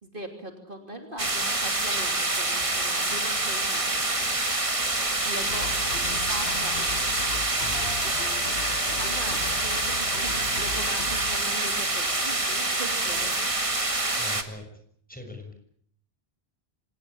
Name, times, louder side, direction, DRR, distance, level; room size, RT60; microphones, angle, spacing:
voice 1, 0.0-4.3 5.2-5.7 6.3-6.8 9.0-13.5, right 1 dB, 55° right, 4 dB, 3.4 m, -40 dB
sound 1, 1.2-14.4, right 2 dB, 30° right, 1.9 m, -26 dB
sound 2, 5.4-11.4, left 4 dB, 70° left, 1.8 m, -37 dB
voice 2, 7.6-8.0 14.2-14.7 15.1-15.5, left 2 dB, 10° left, 4 dB, 6.1 m, -41 dB
26.0 x 18.5 x 8.4 m, 0.65 s
omnidirectional pair, 1.1 m